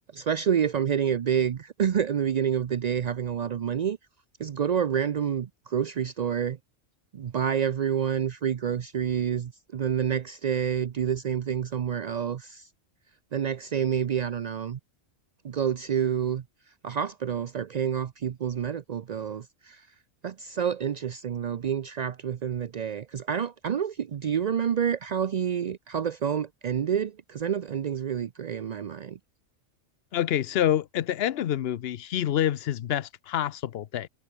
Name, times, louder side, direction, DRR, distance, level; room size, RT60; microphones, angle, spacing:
voice 1, 0.1-4.0 4.4-6.6 7.1-12.7 13.3-14.8 15.4-16.4 16.8-19.9 20.2-29.2, right 8 dB, 70° right, 0.4 m, -28 dB
voice 2, 30.1-34.1, left 11 dB, 60° left, 0.7 m, -27 dB
omnidirectional pair, 1.4 m